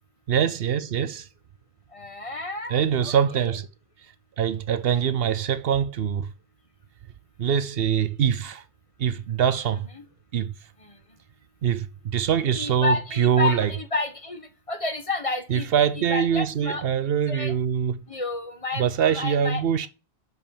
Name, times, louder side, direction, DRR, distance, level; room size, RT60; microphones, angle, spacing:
voice 1, 0.3-1.3 2.7-3.7 4.4-6.3 7.4-8.6 9.0-9.9 10.3-10.6 11.6-13.7 15.5-18.0 18.7-19.9, right 8 dB, 70° right, 0.8 m, -23 dB
voice 2, 1.9-2.8 3.0-3.1 12.5-16.8 17.3-17.5 18.1-19.6, left 3 dB, 30° left, 1.3 m, -30 dB
6.6 x 5.3 x 7.2 m
omnidirectional pair, 1.1 m